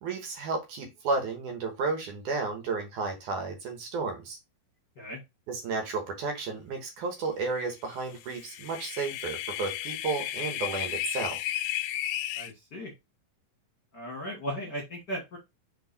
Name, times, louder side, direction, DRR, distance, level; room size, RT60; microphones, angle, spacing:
voice 1, 0.0-4.4 5.5-11.4, right 4 dB, 65° right, 4 dB, 2.5 m, -32 dB
sound 1, 8.2-12.5, left 13 dB, 80° left, 2.1 m, -33 dB
voice 2, 12.3-12.9 13.9-15.4, equal, 45° left, -1 dB, 1.5 m, -36 dB
5.3 x 4.6 x 4.1 m, 0.21 s
omnidirectional pair, 4.2 m